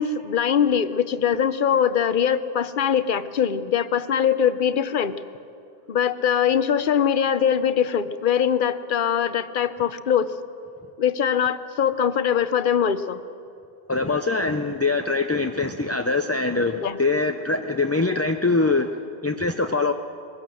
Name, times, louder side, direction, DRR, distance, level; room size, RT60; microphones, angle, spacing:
voice 1, 0.0-5.2 5.9-10.3 11.0-13.2 16.8-17.0, left 8 dB, 55° left, 13 dB, 0.9 m, -22 dB
voice 2, 13.9-19.9, left 3 dB, 20° left, 6 dB, 0.4 m, -23 dB
21.0 x 17.0 x 7.7 m, 2.5 s
omnidirectional pair, 1.1 m